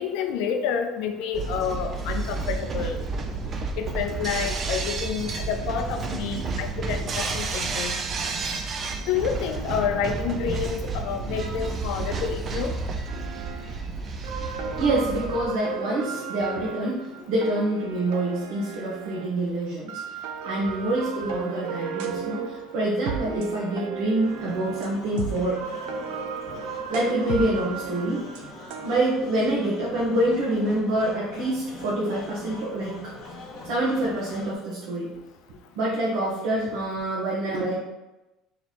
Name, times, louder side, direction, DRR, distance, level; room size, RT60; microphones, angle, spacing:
voice 1, 0.0-3.0 3.8-7.9 9.1-12.7, left 7 dB, 70° left, 6 dB, 0.4 m, -29 dB
sound 1, 1.3-15.5, right 4 dB, 30° right, 0.4 m, -31 dB
sound 2, 13.1-13.8 14.1-19.4 19.9-29.0, right 6 dB, 85° right, 0.5 m, -35 dB
voice 2, 14.8-20.0 20.4-25.6 26.7-28.2 28.8-32.9 33.6-35.1 35.8-37.8, right 1 dB, 70° right, -6 dB, 1.0 m, -26 dB
sound 3, 24.2-34.6, left 2 dB, 55° left, 0.8 m, -43 dB
3.2 x 2.9 x 4.1 m, 1.0 s
cardioid pair, 155°, 0 cm